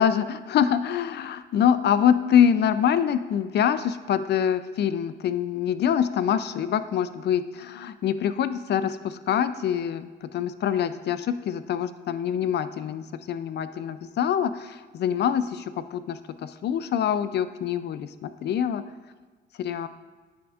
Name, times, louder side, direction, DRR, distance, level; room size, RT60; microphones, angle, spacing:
voice 1, 0.0-18.8 19.6-19.9, left 8 dB, 60° left, 13 dB, 0.4 m, -25 dB
9.7 x 6.0 x 2.4 m, 1.4 s
cardioid pair, 90°, 20 cm